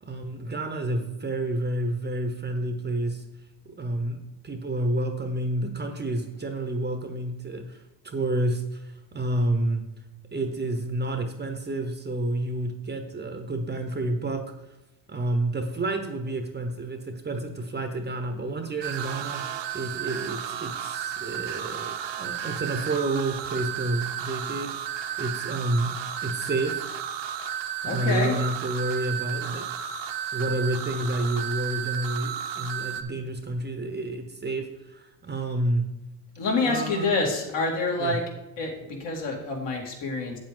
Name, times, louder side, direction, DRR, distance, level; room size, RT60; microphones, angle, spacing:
voice 1, 0.0-3.2 3.6-9.8 10.3-14.4 15.1-19.4 19.7-24.7 25.2-25.9 26.2-26.9 27.8-29.6 30.3-35.9 36.6-37.1 38.0-38.2, right 1 dB, 20° right, 5 dB, 1.0 m, -29 dB
sound 1, 18.8-33.0, right 9 dB, 60° right, 1.0 m, -33 dB
voice 2, 27.8-28.4 36.4-38.2 38.6-40.4, left 3 dB, 60° left, 0 dB, 2.6 m, -27 dB
8.3 x 7.9 x 3.8 m, 0.97 s
cardioid pair, 105°, 48 cm